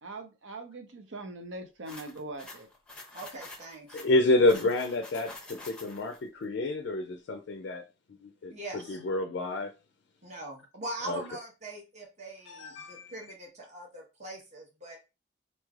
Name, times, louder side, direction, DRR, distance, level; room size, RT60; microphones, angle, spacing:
voice 1, 0.0-2.7, right 2 dB, 80° right, 0.8 m, -42 dB
sound 1, 1.9-6.2, left 2 dB, 5° left, 0.6 m, -47 dB
voice 2, 3.1-4.0 8.5-9.0 10.2-15.0, right 2 dB, 35° right, 1.0 m, -42 dB
voice 3, 3.9-7.9 8.2-9.7 11.0-11.2 12.5-13.1, left 2 dB, 65° left, 0.4 m, -28 dB
4.0 x 3.1 x 2.4 m
head